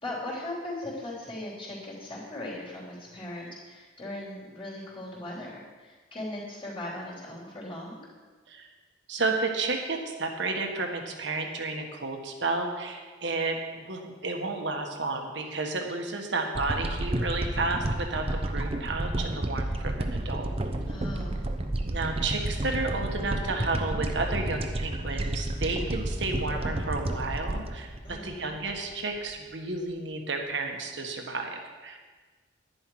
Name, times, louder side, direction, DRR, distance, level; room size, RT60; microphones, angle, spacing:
voice 1, 0.0-8.1 20.9-21.5 28.0-28.5, left 1 dB, 30° left, -6 dB, 3.5 m, -38 dB
voice 2, 9.1-20.5 21.8-32.0, right 3 dB, 70° right, 3 dB, 1.4 m, -32 dB
sound 1, 16.6-28.9 29.3-29.4, right 1 dB, 30° right, 0.8 m, -31 dB
11.0 x 10.5 x 4.7 m, 1.4 s
head